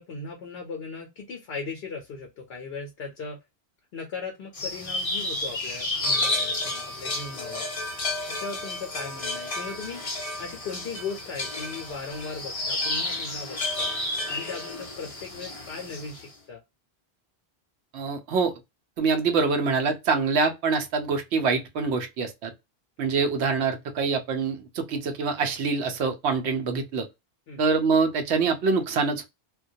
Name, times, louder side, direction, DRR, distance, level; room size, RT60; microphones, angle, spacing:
voice 1, 0.0-3.4 3.9-7.6 8.3-10.0 10.4-13.9 14.3-16.6 27.5-27.6, left 4 dB, 70° left, 0.8 m, -38 dB
sound 1, 4.5-16.2, left 2 dB, 40° left, 0.6 m, -31 dB
voice 2, 17.9-18.5 19.0-22.5 23.0-27.1 27.6-29.2, right 4 dB, 90° right, 0.9 m, -25 dB
2.2 x 2.2 x 2.6 m
omnidirectional pair, 1.1 m